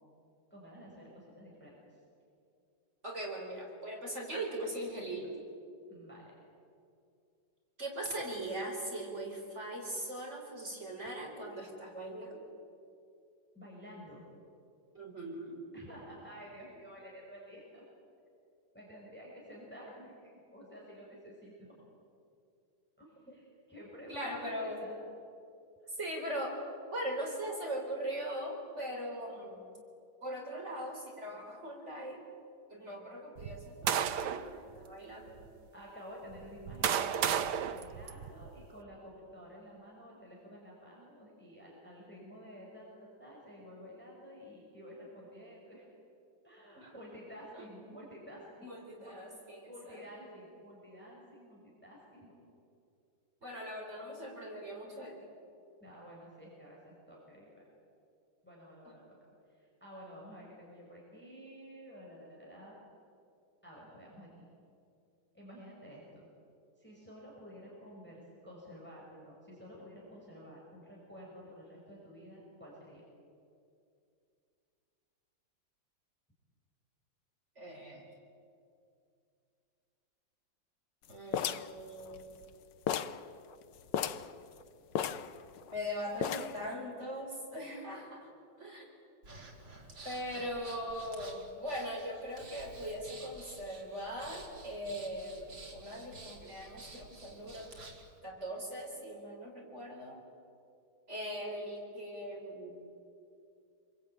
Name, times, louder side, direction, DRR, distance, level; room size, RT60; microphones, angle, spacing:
voice 1, 0.5-2.0 5.9-6.3 13.5-14.2 15.7-17.8 18.7-21.7 23.0-24.9 25.8-25.9 35.7-45.9 46.4-48.7 49.0-49.2 49.7-52.4 53.4-53.7 55.8-57.7 58.4-59.2 59.5-62.7 63.6-64.3 65.3-66.3 66.8-73.0 90.3-90.5, equal, 5° left, -4 dB, 5.9 m, -51 dB
voice 2, 3.0-5.3 7.8-12.4 14.9-15.7 23.3-23.4 24.1-24.8 25.9-26.6 26.9-29.6 30.2-32.2 32.7-35.5 46.7-47.0 47.5-47.6 48.6-50.0 53.4-55.3 77.6-78.1 81.1-82.4 85.7-88.3 88.6-88.9 90.0-97.7 98.2-100.2 101.1-102.8, equal, 35° right, 0 dB, 4.7 m, -40 dB
sound 1, 33.4-34.5 35.3-35.4 36.3-38.7, right 8 dB, 65° right, 1.4 m, -33 dB
sound 2, 81.3-82.5 82.9-83.2 83.5-83.6 83.9-84.3 85.0-85.8 86.2-86.7, left 9 dB, 70° left, 1.5 m, -35 dB
Breathing, 89.2-98.1, right 2 dB, 80° right, 4.2 m, -51 dB
28.5 x 22.0 x 9.2 m, 2.5 s
omnidirectional pair, 2.0 m